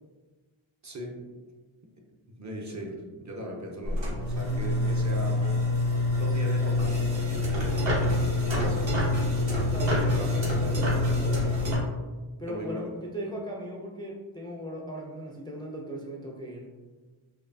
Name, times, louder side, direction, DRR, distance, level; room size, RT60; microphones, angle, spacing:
voice 1, 0.8-1.3 2.3-5.7 6.1-9.0 9.9-11.1 12.4-13.0, equal, 35° right, 0 dB, 0.6 m, -39 dB
sound 1, 3.8-11.8, left 2 dB, 60° right, 1.1 m, -26 dB
voice 2, 9.7-11.8 12.4-16.8, equal, 10° left, -2 dB, 0.3 m, -38 dB
4.5 x 2.6 x 2.6 m, 1.3 s
wide cardioid pair, 105°, 50 cm